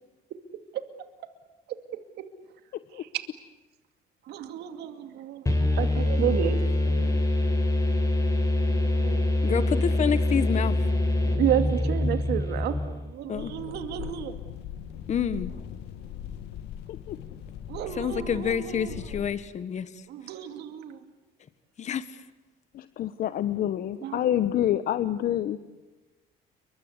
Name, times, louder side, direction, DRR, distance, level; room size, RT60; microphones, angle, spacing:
voice 1, 4.3-6.8 8.8-9.6 11.2-14.3 17.7-18.9 20.1-21.0 24.0-24.2, right 10 dB, 75° right, 8 dB, 2.4 m, -31 dB
sound 1, 5.5-13.1, left 1 dB, 20° left, 7.6 m, -25 dB
voice 2, 9.4-10.9 13.3-13.5 15.1-15.5 17.9-20.0 21.8-22.2, left 8 dB, 45° left, 13 dB, 1.5 m, -28 dB
sound 2, 13.3-19.3, left 9 dB, 85° left, 2.0 m, -40 dB
voice 3, 22.7-25.6, left 11 dB, 60° left, 13 dB, 1.1 m, -27 dB
29.5 x 24.5 x 8.3 m, 1.2 s
cardioid pair, 110°, 17 cm